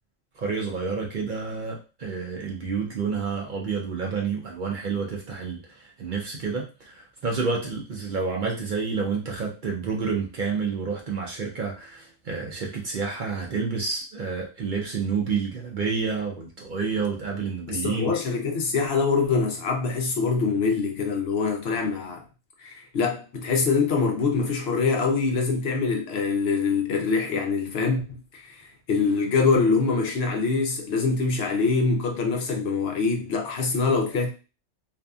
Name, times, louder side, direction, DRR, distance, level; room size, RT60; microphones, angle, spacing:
voice 1, 0.4-18.1, right 5 dB, 55° right, 0.6 m, -29 dB
voice 2, 17.7-22.2 22.6-34.3, left 4 dB, 60° left, 0.8 m, -24 dB
2.6 x 2.5 x 2.3 m
omnidirectional pair, 1.3 m